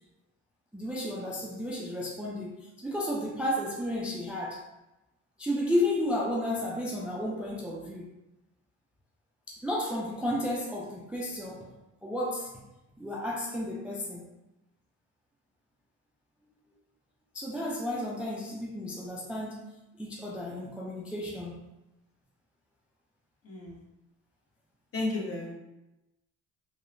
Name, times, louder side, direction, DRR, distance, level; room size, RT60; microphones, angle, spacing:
voice 1, 0.7-4.6 5.4-8.1 9.5-11.7 12.0-12.6 13.0-14.2 17.3-19.7 20.0-21.6, left 1 dB, 5° right, -3 dB, 0.3 m, -32 dB
voice 2, 23.4-23.8 24.9-25.5, left 2 dB, 50° left, -3 dB, 0.9 m, -33 dB
2.8 x 2.0 x 2.5 m, 0.97 s
cardioid pair, 90°, 30 cm